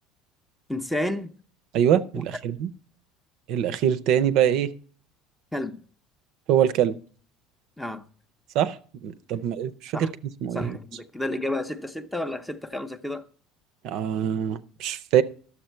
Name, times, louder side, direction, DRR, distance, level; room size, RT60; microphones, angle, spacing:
voice 1, 0.7-1.3 2.1-2.2 5.5-5.8 7.8-8.0 9.3-9.4 9.9-10.1 10.5-13.2, left 1 dB, 5° left, 0.6 m, -31 dB
voice 2, 1.7-2.7 3.5-4.7 6.5-7.0 8.5-8.8 9.0-10.1 10.4-10.8 13.8-15.2, right 9 dB, 55° right, 0.6 m, -23 dB
12.0 x 7.2 x 4.4 m
cardioid pair, 155°, 0 cm